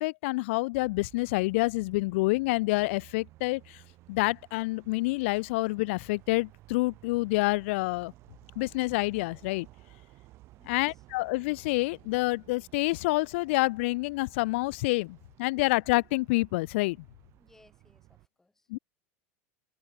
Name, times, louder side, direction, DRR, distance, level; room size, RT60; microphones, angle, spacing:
voice 1, 0.0-3.6 4.1-8.1 8.6-9.7 10.7-17.0 18.7-18.8, left 23 dB, 65° left, 0.4 m, -28 dB
sound 1, 0.7-18.3, right 17 dB, 40° right, 7.8 m, -56 dB
voice 2, 10.6-11.1 17.3-18.7, left 2 dB, 5° left, 3.7 m, -63 dB
supercardioid pair, 165°, 7 cm